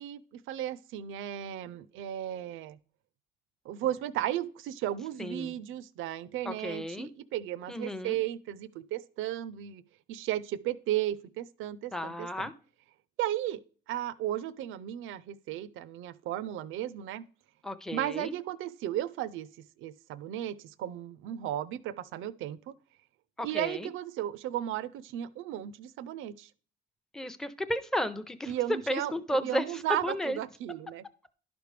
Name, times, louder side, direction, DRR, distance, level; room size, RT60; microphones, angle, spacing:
voice 1, 0.0-2.8 3.7-9.8 10.1-12.5 13.2-13.6 13.9-17.2 17.9-22.7 23.4-26.5 28.5-31.0, right 12 dB, 90° right, 0.5 m, -35 dB
voice 2, 5.2-5.5 6.4-7.1 7.7-8.2 11.9-12.5 17.6-18.3 23.4-23.9 27.1-28.5 28.9-29.6 29.9-30.4, equal, 5° left, 0.5 m, -33 dB
11.0 x 5.1 x 3.3 m
cardioid pair, 90°, 20 cm